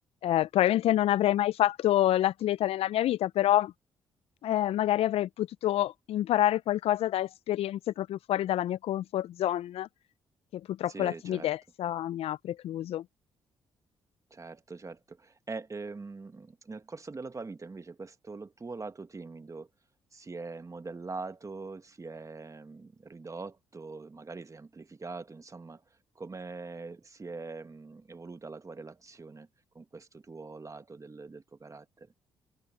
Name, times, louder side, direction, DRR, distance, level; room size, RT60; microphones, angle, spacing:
voice 1, 0.2-3.7 4.4-9.9 10.5-13.0, left 13 dB, 65° left, 0.6 m, -27 dB
voice 2, 10.9-11.5 14.3-19.7 20.1-25.8 26.2-29.5 29.7-32.1, right 3 dB, 30° right, 2.2 m, -43 dB
hypercardioid pair, 50°, 11 cm